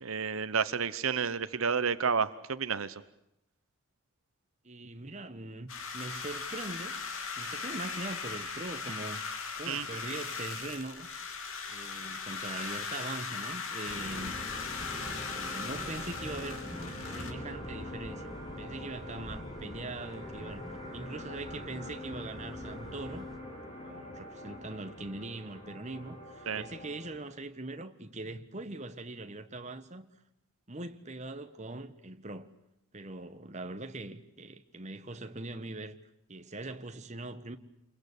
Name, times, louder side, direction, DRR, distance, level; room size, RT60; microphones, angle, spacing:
voice 1, 0.0-2.9 9.7-9.8 26.5-26.6, right 6 dB, 70° right, 1.0 m, -30 dB
voice 2, 4.6-7.0 7.4-11.1 11.7-14.4 15.1-16.7 17.1-18.3 18.6-20.6 20.9-23.3 23.8-30.1 30.7-32.5 32.9-36.0 36.3-37.6, right 2 dB, 30° right, 1.4 m, -41 dB
sound 1, 5.7-17.3, left 5 dB, 70° left, 3.2 m, -38 dB
sound 2, 13.9-27.2, left 1 dB, 25° left, 7.5 m, -44 dB
sound 3, 13.9-23.4, equal, ahead, 2.6 m, -47 dB
28.0 x 22.5 x 8.3 m
head